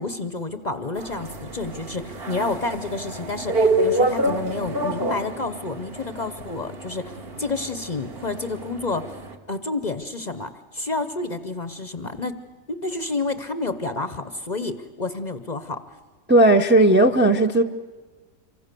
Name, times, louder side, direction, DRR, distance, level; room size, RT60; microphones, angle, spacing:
voice 1, 0.0-7.1 7.4-9.1 9.5-12.3 12.7-15.8, left 3 dB, 40° left, 0.8 m, -29 dB
sound 1, 1.0-9.3, right 2 dB, 45° right, 1.6 m, -28 dB
voice 2, 16.3-17.6, right 1 dB, 10° right, 0.5 m, -15 dB
27.0 x 24.0 x 6.8 m
omnidirectional pair, 1.5 m